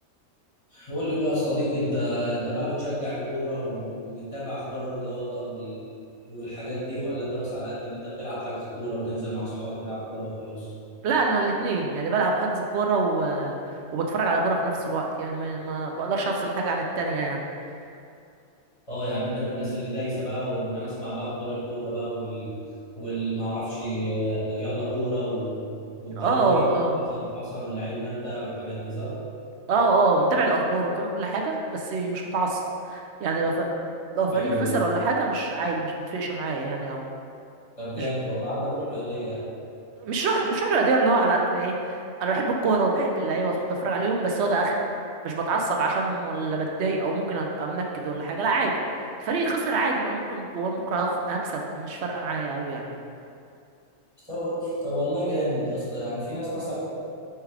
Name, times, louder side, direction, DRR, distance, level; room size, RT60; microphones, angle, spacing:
voice 1, 0.7-5.8 6.2-10.7 18.9-22.6 22.9-25.6 26.0-26.7 27.0-29.1 34.3-34.7 37.8-39.4 54.3-56.7, equal, 25° left, -10 dB, 1.5 m, -30 dB
voice 2, 11.0-17.4 26.1-27.0 29.7-32.6 32.9-33.7 34.2-37.0 38.0-38.1 40.0-44.7 45.2-48.7 49.2-52.8, right 3 dB, 65° right, 1 dB, 0.7 m, -25 dB
3.4 x 3.3 x 4.6 m, 2.5 s
omnidirectional pair, 1.4 m